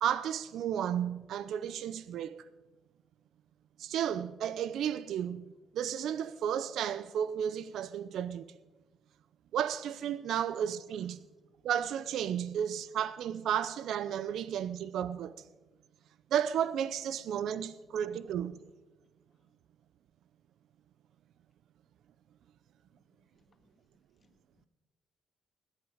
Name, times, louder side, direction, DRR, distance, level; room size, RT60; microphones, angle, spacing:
voice 1, 0.0-2.4 3.8-8.5 9.5-11.2 11.6-15.3 16.3-18.6, right 9 dB, 75° right, 0.5 m, -33 dB
voice 2, 22.9-23.7 24.2-24.7, left 4 dB, 40° left, 1.7 m, -73 dB
18.0 x 9.0 x 5.0 m
cardioid pair, 90°, 0 cm